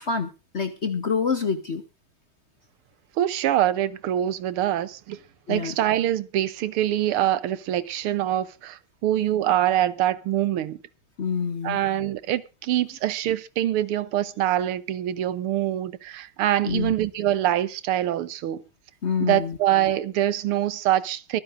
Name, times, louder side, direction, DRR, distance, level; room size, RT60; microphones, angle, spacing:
voice 1, 0.0-1.8 5.5-5.8 11.2-11.8 16.7-16.9 19.0-19.6, left 5 dB, 45° left, 0.9 m, -27 dB
voice 2, 3.2-5.2 5.5-10.8 11.6-18.6 19.2-21.4, right 12 dB, 85° right, 1.8 m, -24 dB
24.0 x 9.8 x 2.6 m
omnidirectional pair, 2.4 m